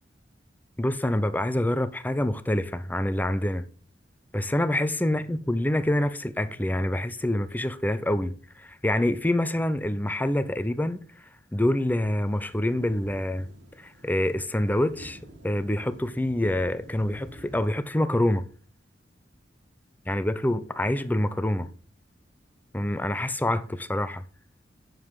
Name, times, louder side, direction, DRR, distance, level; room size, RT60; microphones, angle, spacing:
voice 1, 0.8-3.7 4.3-11.0 11.5-13.5 13.8-15.2 15.4-18.5 20.1-21.7 22.7-24.2, left 1 dB, 10° left, 0.6 m, -26 dB
sound 1, 12.3-17.7, right 1 dB, 75° right, 2.1 m, -48 dB
9.1 x 7.4 x 4.8 m
head